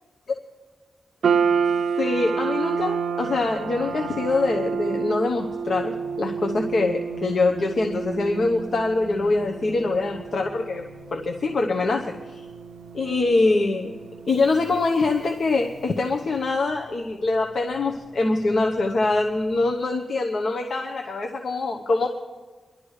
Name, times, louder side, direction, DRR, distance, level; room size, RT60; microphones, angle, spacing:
sound 1, 1.2-15.6, right 6 dB, 75° right, 0.5 m, -30 dB
voice 1, 2.0-10.8 11.1-12.4 12.9-14.0 14.3-22.1, left 3 dB, 60° left, 1 dB, 1.0 m, -24 dB
sound 2, 3.2-19.7, equal, 5° right, 3.5 m, -45 dB
24.5 x 12.0 x 3.3 m, 1.3 s
wide cardioid pair, 115°, 0 cm